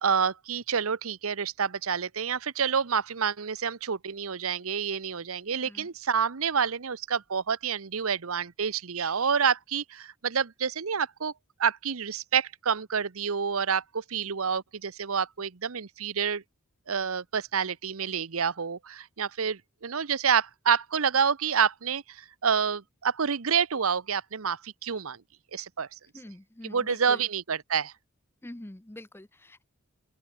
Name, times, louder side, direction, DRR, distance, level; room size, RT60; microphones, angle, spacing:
voice 1, 0.0-11.3 11.6-16.4 16.9-25.2 25.5-25.9 26.6-27.9, right 6 dB, 75° right, 0.9 m, -28 dB
voice 2, 26.1-27.3 28.4-29.6, left 1 dB, 10° left, 0.6 m, -45 dB
open air
head